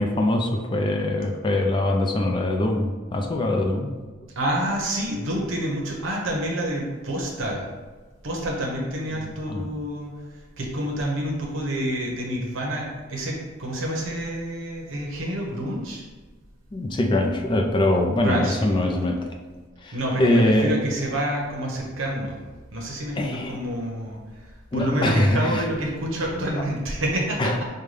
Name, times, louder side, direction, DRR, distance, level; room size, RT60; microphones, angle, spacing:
voice 1, 0.0-4.0 9.1-9.7 16.7-19.2 19.8-20.7 23.2-23.6 24.7-25.6 26.4-26.7 27.4-27.7, left 1 dB, 25° left, 2 dB, 0.3 m, -23 dB
voice 2, 4.4-7.7 8.2-10.1 10.6-16.0 18.2-18.9 19.9-22.4 22.7-24.2 24.7-27.7, right 1 dB, 80° right, -1 dB, 0.8 m, -28 dB
5.2 x 2.2 x 3.2 m, 1.3 s
head